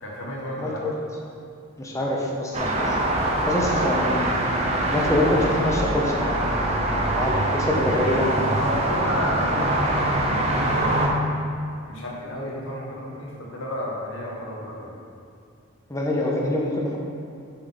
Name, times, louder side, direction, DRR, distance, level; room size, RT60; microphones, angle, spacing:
voice 1, 0.0-0.8 2.0-2.1 8.5-11.0 11.9-15.0, equal, 70° left, -4 dB, 1.4 m, -33 dB
voice 2, 0.6-0.9 1.8-3.0 3.5-4.6 4.9-8.4 15.9-17.0, left 1 dB, 15° left, -2 dB, 0.7 m, -25 dB
sound 1, 2.5-11.1, right 1 dB, 30° right, 0.7 m, -24 dB
6.7 x 3.8 x 5.5 m, 2.5 s
head